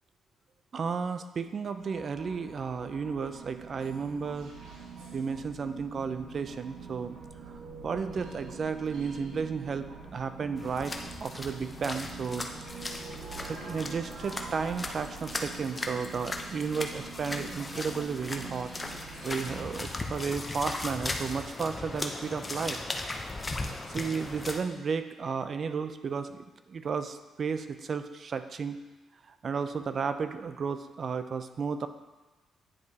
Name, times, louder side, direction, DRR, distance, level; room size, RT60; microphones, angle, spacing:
voice 1, 0.7-4.5 5.1-7.2 7.5-7.6 7.8-10.9 11.2-12.8 13.3-22.8 23.9-28.8 29.3-31.9, right 5 dB, 45° right, 10 dB, 0.4 m, -33 dB
sound 1, 1.6-20.5, right 4 dB, 85° right, 1.5 m, -45 dB
sound 2, 10.6-24.6, left 2 dB, 25° left, 0.6 m, -38 dB
9.7 x 4.7 x 2.8 m, 1.2 s
cardioid pair, 90°, 0 cm